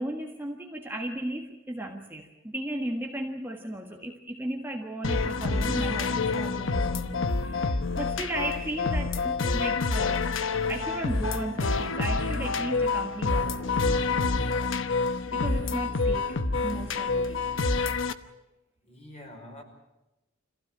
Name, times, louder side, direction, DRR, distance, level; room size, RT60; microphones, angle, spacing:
voice 1, 0.0-10.2 10.7-13.7 15.3-17.6, right 1 dB, 10° right, 1 dB, 1.6 m, -36 dB
sound 1, 5.0-18.1, left 3 dB, 65° left, 1.1 m, -27 dB
voice 2, 18.8-19.6, left 1 dB, 30° left, 2 dB, 5.6 m, -46 dB
26.0 x 16.0 x 8.9 m, 0.99 s
head